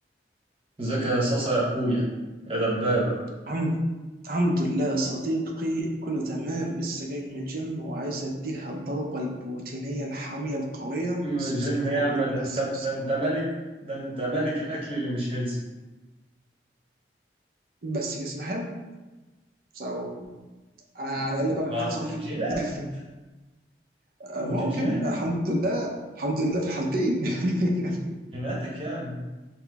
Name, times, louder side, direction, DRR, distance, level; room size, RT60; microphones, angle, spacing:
voice 1, 0.8-2.0 2.5-3.2 11.2-13.4 13.8-15.6 21.1-21.2 21.7-22.6 24.4-25.0 28.3-29.2, right 1 dB, 30° right, -5 dB, 1.0 m, -27 dB
voice 2, 3.5-3.8 4.2-12.9 17.8-18.7 19.7-20.2 20.9-22.1 22.6-22.9 24.2-28.0, right 1 dB, 55° right, 0 dB, 0.6 m, -29 dB
5.7 x 2.2 x 3.5 m, 1.2 s
head